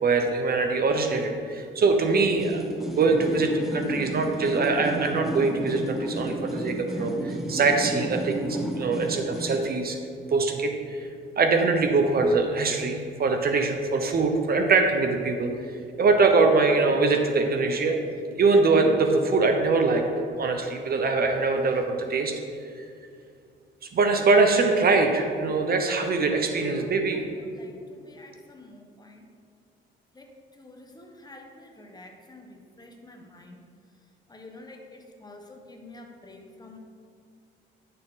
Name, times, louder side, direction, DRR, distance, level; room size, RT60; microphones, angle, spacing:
voice 1, 0.0-2.6 3.0-10.0 10.3-11.1 11.4-15.5 16.0-18.0 18.4-20.0 20.4-22.3 23.9-27.2, right 3 dB, 50° right, 5 dB, 1.0 m, -23 dB
sound 1, 2.2-9.7, right 1 dB, ahead, 1.2 m, -32 dB
voice 2, 27.1-29.3 30.1-33.6 34.3-36.8, left 2 dB, 20° left, 2 dB, 1.3 m, -48 dB
10.5 x 6.9 x 3.9 m, 2.3 s
cardioid pair, 90°, 20 cm